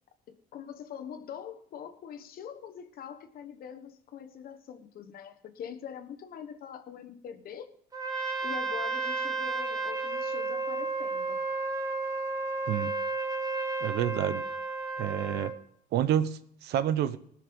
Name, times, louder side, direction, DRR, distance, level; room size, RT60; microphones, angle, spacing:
voice 1, 0.3-7.7 8.4-11.4, left 8 dB, 60° left, 7 dB, 1.2 m, -43 dB
Trumpet, 7.9-15.6, right 3 dB, 20° right, 1.8 m, -32 dB
voice 2, 13.8-14.4 15.0-15.5 15.9-17.2, right 10 dB, 75° right, 14 dB, 0.9 m, -28 dB
19.0 x 6.5 x 5.3 m, 0.64 s
cardioid pair, 110°, 17 cm